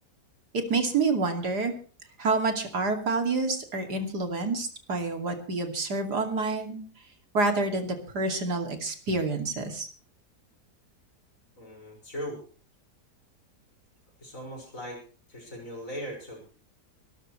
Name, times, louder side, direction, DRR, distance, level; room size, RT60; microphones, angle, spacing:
voice 1, 0.5-1.7 2.2-6.8 7.3-9.9, right 3 dB, 70° right, 5 dB, 3.1 m, -28 dB
voice 2, 11.6-12.4 14.2-15.0 15.3-16.5, equal, 50° left, 1 dB, 6.2 m, -39 dB
24.0 x 13.5 x 3.2 m, 0.40 s
omnidirectional pair, 1.8 m